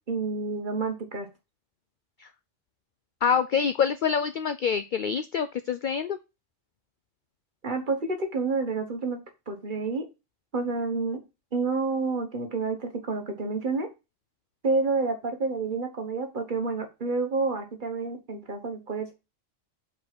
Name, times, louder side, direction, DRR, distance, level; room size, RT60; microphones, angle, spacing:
voice 1, 0.1-1.3 7.6-9.2 9.5-10.1 10.5-11.2 11.5-13.9 14.6-19.2, right 3 dB, 40° right, 5 dB, 1.3 m, -29 dB
voice 2, 3.2-6.2, left 6 dB, 60° left, 11 dB, 0.5 m, -26 dB
5.2 x 4.3 x 6.0 m, 0.27 s
omnidirectional pair, 1.3 m